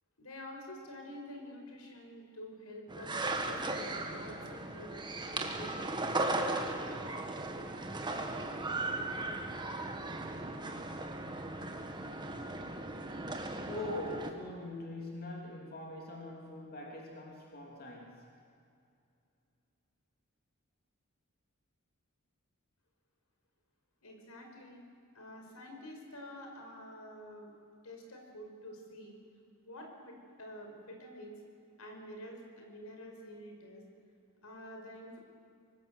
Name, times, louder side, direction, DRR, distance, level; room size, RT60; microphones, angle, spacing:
voice 1, 0.2-4.9 5.3-6.4 24.0-24.8 25.1-27.5 27.8-29.2 29.6-31.3 31.8-33.8 34.4-35.2, equal, 85° left, 2 dB, 5.2 m, -48 dB
sound 1, 2.9-14.3, right 2 dB, 20° right, 1.7 m, -37 dB
voice 2, 13.7-18.3, left 1 dB, 45° left, 0 dB, 3.0 m, -42 dB
25.0 x 20.0 x 7.9 m, 2.5 s
head